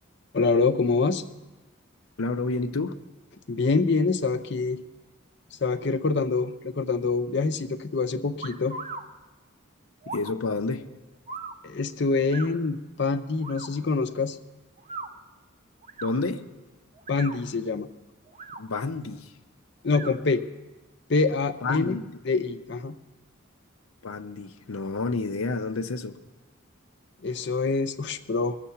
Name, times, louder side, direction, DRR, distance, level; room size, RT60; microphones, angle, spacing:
voice 1, 0.3-1.2 3.5-4.8 5.6-8.8 11.6-14.4 17.1-17.9 19.8-20.4 21.1-22.0 22.2-23.0 27.2-28.6, left 4 dB, 55° left, 9 dB, 0.6 m, -25 dB
voice 2, 2.2-3.0 10.1-10.9 16.0-16.4 18.6-19.3 21.6-22.1 24.0-26.2, left 3 dB, 90° left, 9 dB, 0.7 m, -29 dB
sound 1, 8.4-9.0 10.0-10.3 11.3-11.6 12.3-12.5 13.4-13.7 14.8-15.1 15.8-16.1 16.9-17.4 18.3-18.6 19.9-20.1, right 3 dB, 30° right, 0.7 m, -38 dB
21.0 x 7.4 x 5.7 m, 1.2 s
head